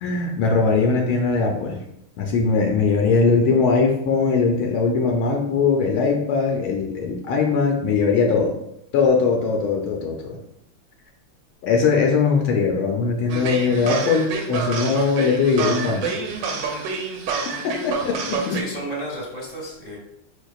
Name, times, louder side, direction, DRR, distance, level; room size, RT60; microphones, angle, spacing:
voice 1, 0.0-1.8 2.2-8.5 8.9-10.4 11.6-16.1 17.6-18.6, left 4 dB, 75° left, 1 dB, 1.4 m, -20 dB
sound 1, 13.3-18.6, right 5 dB, 70° right, 1.2 m, -28 dB
voice 2, 18.5-20.0, right 1 dB, 25° left, -3 dB, 1.0 m, -32 dB
4.9 x 4.5 x 2.3 m, 0.78 s
omnidirectional pair, 2.4 m